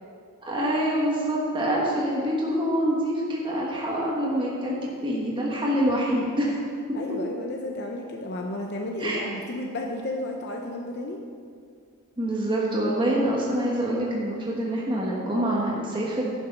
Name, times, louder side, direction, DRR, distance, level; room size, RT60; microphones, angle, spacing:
voice 1, 0.4-4.7 5.0-6.5 9.0-9.2 12.2-16.2, right 1 dB, 20° right, -4 dB, 1.3 m, -25 dB
voice 2, 6.9-11.2, left 1 dB, 50° left, 1 dB, 0.7 m, -32 dB
11.0 x 6.8 x 5.3 m, 2.2 s
head